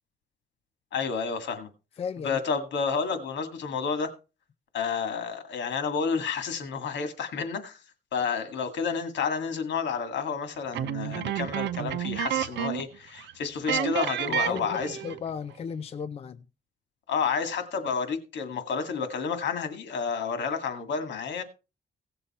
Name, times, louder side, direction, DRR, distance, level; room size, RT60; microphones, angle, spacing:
voice 1, 0.9-1.7 2.2-4.1 4.7-7.8 8.1-15.0 17.1-21.4, left 5 dB, 85° left, 2.1 m, -30 dB
voice 2, 2.0-2.4 13.7-13.9 14.3-16.5, left 6 dB, 35° left, 0.5 m, -35 dB
sound 1, 10.7-12.9 13.2-13.3 13.7-15.3, right 11 dB, 90° right, 0.7 m, -30 dB
17.0 x 7.0 x 4.3 m
cardioid pair, 160°, 18 cm